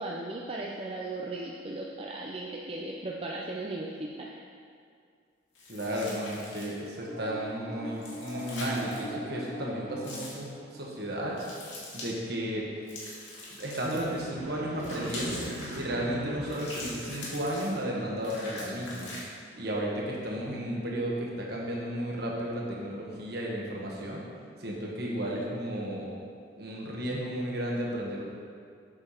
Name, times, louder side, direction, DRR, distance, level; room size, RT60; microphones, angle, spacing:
voice 1, 0.0-4.3, right 2 dB, 30° right, -2 dB, 0.5 m, -37 dB
sound 1, 5.5-6.9 7.9-9.0 10.0-10.4 11.4-12.1 12.9-14.2 14.8-15.8 16.5-17.8 18.2-19.2, left 2 dB, 70° left, 2.0 m, -42 dB
voice 2, 5.7-10.4 10.7-11.5 11.9-12.6 13.6-15.4 15.8-19.1 19.5-24.2 24.6-26.1 26.6-28.2, equal, 55° right, -3 dB, 1.5 m, -33 dB
sound 2, 6.8-11.1 13.7-18.7, right 1 dB, 80° right, 1.3 m, -42 dB
7.7 x 6.8 x 4.4 m, 2.3 s
head